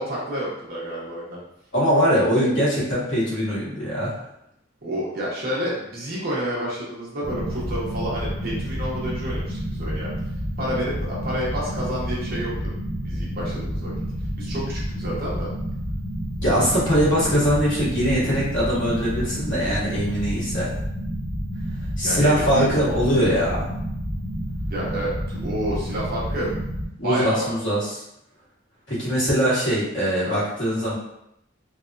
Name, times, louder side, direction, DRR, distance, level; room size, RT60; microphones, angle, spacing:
voice 1, 0.0-1.4 2.4-2.5 4.8-10.1 10.6-13.9 14.4-15.5 22.0-22.6 24.7-26.5 27.0-27.5 30.2-30.4, equal, 50° right, -6 dB, 1.1 m, -29 dB
voice 2, 1.7-4.2 16.4-20.7 22.0-23.7 27.0-28.0 28.9-30.9, equal, 70° left, -8 dB, 1.5 m, -22 dB
sound 1, 7.2-26.9, equal, 10° right, 0.8 m, -29 dB
3.4 x 2.3 x 2.6 m, 0.80 s
head